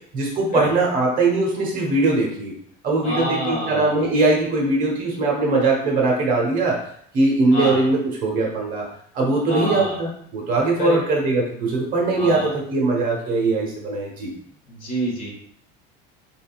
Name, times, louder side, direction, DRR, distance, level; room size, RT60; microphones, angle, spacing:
voice 1, 0.1-2.5 2.8-6.8 7.1-8.8 9.1-14.3, right 2 dB, 40° right, -1 dB, 1.3 m, -21 dB
voice 2, 3.0-4.1 7.5-7.8 9.5-10.0 10.8-11.0 12.1-12.6 14.7-15.3, equal, 40° left, -1 dB, 1.4 m, -27 dB
4.9 x 3.9 x 2.4 m, 0.65 s
cardioid pair, 165°, 21 cm